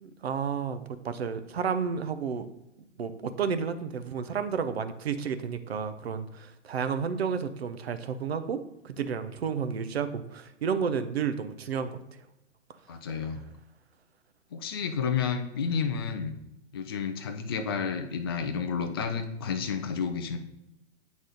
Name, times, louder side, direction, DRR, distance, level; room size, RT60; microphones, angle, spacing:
voice 1, 0.0-2.5 3.0-12.0, right 6 dB, 55° right, 10 dB, 0.8 m, -31 dB
voice 2, 12.9-13.4 14.5-16.4 16.7-20.4, left 6 dB, 20° left, 6 dB, 0.3 m, -31 dB
8.8 x 4.1 x 3.9 m, 0.89 s
figure-of-eight pair, 115°, 37 cm